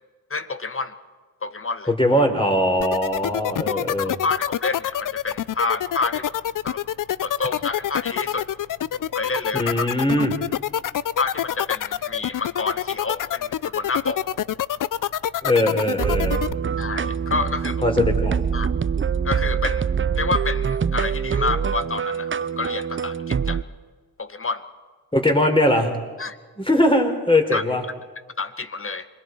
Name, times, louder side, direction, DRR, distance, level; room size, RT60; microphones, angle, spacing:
voice 1, 0.3-0.9 1.4-1.9 3.7-6.3 6.6-6.8 7.2-8.5 8.9-9.9 10.2-10.3 11.2-14.2 16.8-17.8 18.5-18.7 19.2-19.9 20.1-23.6 24.2-24.6 26.2-26.4 27.5-27.6 28.4-29.1, left 4 dB, 35° left, 10 dB, 1.7 m, -28 dB
voice 2, 1.9-4.2 9.5-10.3 15.4-16.4 17.8-18.4 25.1-26.0 26.6-27.8, left 1 dB, 15° left, 4 dB, 4.4 m, -20 dB
sound 1, 2.8-16.5, left 11 dB, 55° left, 0.6 m, -26 dB
sound 2, 16.0-23.6, right 6 dB, 30° right, 0.7 m, -24 dB
26.5 x 21.5 x 4.8 m, 1.4 s
supercardioid pair, 45°, 39 cm